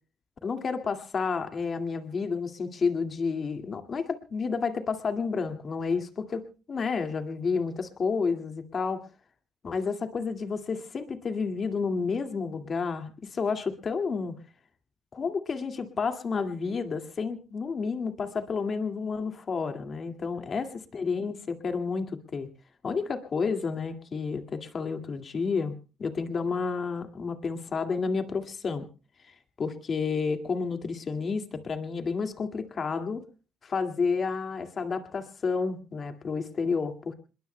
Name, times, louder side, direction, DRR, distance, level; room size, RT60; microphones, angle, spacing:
voice 1, 0.4-9.1 9.6-14.4 15.1-22.5 22.8-25.7 26.0-28.9 29.6-33.2 33.6-37.1, left 5 dB, 45° left, 7 dB, 2.1 m, -30 dB
27.0 x 21.0 x 2.2 m, 0.34 s
cardioid pair, 90°, 0 cm